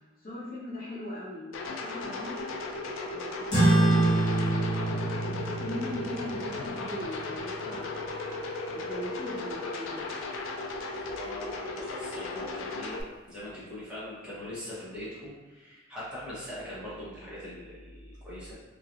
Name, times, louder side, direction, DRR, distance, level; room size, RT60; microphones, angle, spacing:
voice 1, 0.2-2.5 2.9-4.8 5.2-8.4 8.7-10.1, equal, 50° left, -8 dB, 0.9 m, -40 dB
sound 1, 1.5-13.0, left 3 dB, 80° left, 0.4 m, -36 dB
sound 2, 3.5-8.4, right 2 dB, 20° left, 0.8 m, -27 dB
voice 2, 10.9-13.0 13.3-18.5, left 1 dB, 5° right, -11 dB, 0.9 m, -41 dB
3.0 x 2.3 x 2.5 m, 1.2 s
head